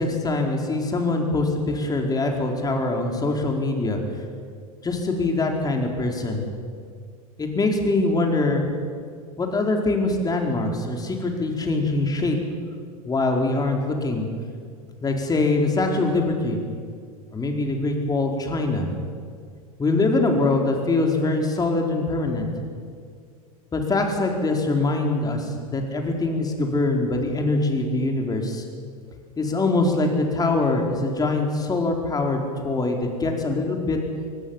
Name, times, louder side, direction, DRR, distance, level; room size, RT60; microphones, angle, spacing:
voice 1, 0.0-4.0 4.8-6.4 7.4-8.7 9.4-12.4 13.0-14.3 15.0-16.6 17.3-18.9 19.8-22.5 23.7-28.6 29.4-34.0, left 2 dB, 20° left, 2 dB, 4.6 m, -23 dB
24.0 x 19.0 x 7.4 m, 2.1 s
hypercardioid pair, 90°, 19 cm